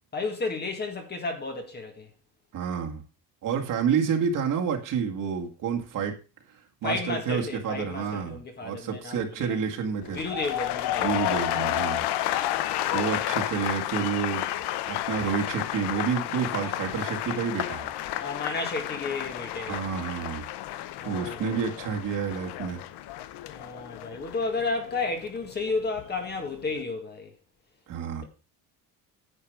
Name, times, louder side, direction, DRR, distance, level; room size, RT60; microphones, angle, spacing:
voice 1, 0.1-2.1 6.8-9.5 10.1-11.2 18.2-19.8 21.0-21.6 23.5-27.3, left 3 dB, 25° left, 1.8 m, -32 dB
voice 2, 2.5-3.0 3.4-6.2 6.8-10.2 11.0-12.1 12.9-14.5 14.9-17.9 19.6-20.5 21.0-22.8 27.9-28.2, right 6 dB, 50° right, 2.1 m, -29 dB
sound 1, 10.0-26.1 26.4-26.8, left 13 dB, 75° left, 0.9 m, -31 dB
9.9 x 7.3 x 4.9 m
cardioid pair, 175°, 40 cm